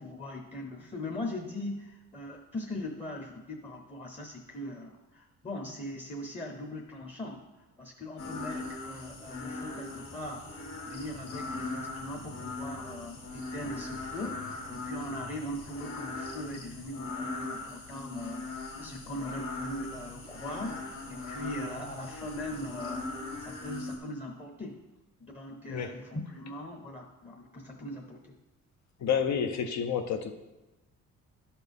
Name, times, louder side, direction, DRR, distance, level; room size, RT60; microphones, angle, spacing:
voice 1, 0.0-23.1 23.4-24.8 25.2-28.3, left 1 dB, 20° left, 1 dB, 0.9 m, -40 dB
sound 1, 8.2-24.0, left 3 dB, 45° left, 2.0 m, -40 dB
voice 2, 29.0-30.3, left 7 dB, 65° left, 7 dB, 0.8 m, -29 dB
11.0 x 4.3 x 3.6 m, 1.1 s
cardioid pair, 90°, 30 cm